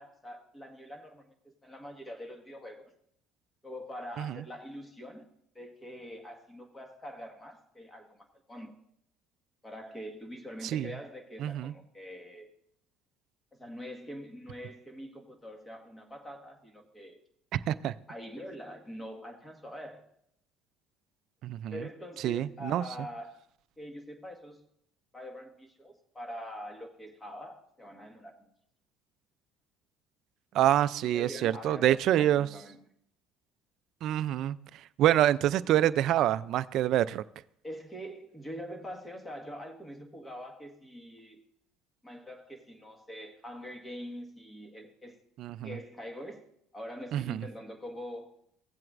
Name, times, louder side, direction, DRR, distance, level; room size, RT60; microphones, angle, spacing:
voice 1, 0.0-1.3 1.6-2.9 3.6-5.2 5.5-8.7 9.6-12.5 13.5-17.2 18.1-20.0 21.7-23.4 23.8-24.6 25.1-28.4 31.0-32.8 37.6-41.4 42.0-45.2 45.6-46.5 46.7-48.3, equal, 15° left, 3 dB, 1.5 m, -44 dB
voice 2, 11.4-11.7 17.5-17.9 21.4-21.8 22.2-22.8 30.5-32.5 34.0-34.6 35.0-37.2 45.4-45.7 47.1-47.4, right 12 dB, 60° right, 16 dB, 0.3 m, -26 dB
16.5 x 7.6 x 2.5 m, 0.71 s
supercardioid pair, 100°, 0 cm